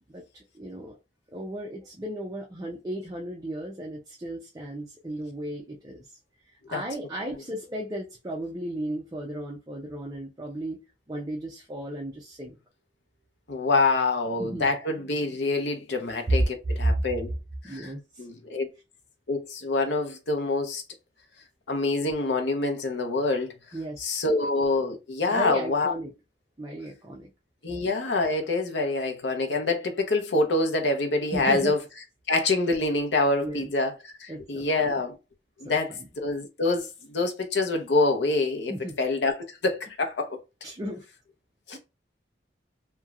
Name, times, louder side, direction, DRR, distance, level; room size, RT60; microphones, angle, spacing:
voice 1, 0.1-1.0 1.3-6.2 6.5-10.8 11.1-12.6 14.4-14.7 16.3-16.4 16.8-17.0 17.6-18.3 23.7-24.2 25.3-26.1 26.6-27.3 31.3-31.7 33.4-33.7 34.3-35.0 35.6-36.1 38.7-39.0 40.6-41.0 41.7-41.8, right 1 dB, 20° right, 0.5 m, -34 dB
voice 2, 13.5-17.3 17.6-17.9 18.2-18.7 19.3-20.8 21.7-23.5 24.0-25.9 27.6-31.8 32.3-35.2 35.6-40.4 41.7-41.8, left 3 dB, 70° left, 0.7 m, -26 dB
3.0 x 2.3 x 2.4 m
head